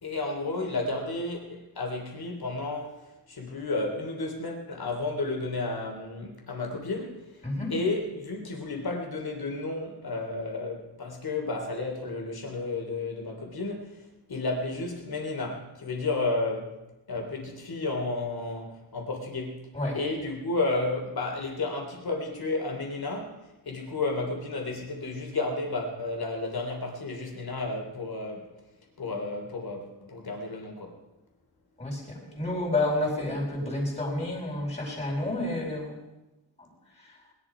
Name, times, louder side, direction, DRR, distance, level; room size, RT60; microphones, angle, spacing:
voice 1, 0.0-3.0 3.3-7.4 7.7-16.8 17.1-19.7 19.9-28.6 29.0-31.0, left 2 dB, 60° left, 2 dB, 3.5 m, -32 dB
voice 2, 31.8-35.9, left 2 dB, 15° left, -2 dB, 4.7 m, -30 dB
20.5 x 11.5 x 5.0 m, 0.99 s
wide cardioid pair, 135°, 42 cm